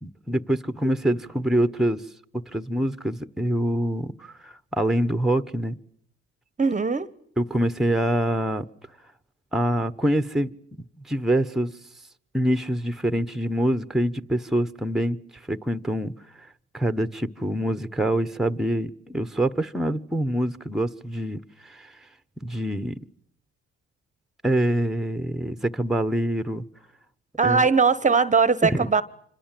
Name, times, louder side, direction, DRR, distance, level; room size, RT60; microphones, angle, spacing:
voice 1, 0.0-2.0 2.5-5.8 7.4-8.6 9.5-10.5 11.1-11.7 12.3-16.1 16.7-21.9 22.4-23.0 24.4-26.6 27.4-27.6 28.6-28.9, right 1 dB, ahead, 1.1 m, -25 dB
voice 2, 6.6-7.1 27.4-29.0, right 5 dB, 25° right, 1.0 m, -20 dB
26.5 x 26.0 x 7.7 m
cardioid pair, 90°, 30 cm